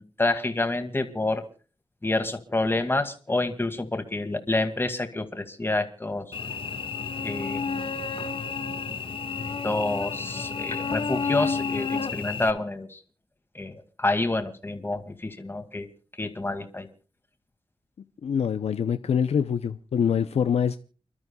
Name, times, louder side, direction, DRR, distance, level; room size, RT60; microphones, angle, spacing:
voice 1, 0.0-1.4 2.0-6.4 7.2-7.8 9.6-13.0 13.5-15.9 16.2-16.9, left 2 dB, 20° left, 2.2 m, -28 dB
Cricket / Buzz, 6.3-12.5, left 5 dB, 60° left, 1.6 m, -30 dB
voice 2, 18.2-20.8, left 7 dB, 90° left, 0.7 m, -24 dB
29.5 x 12.5 x 2.3 m
wide cardioid pair, 90°, 10 cm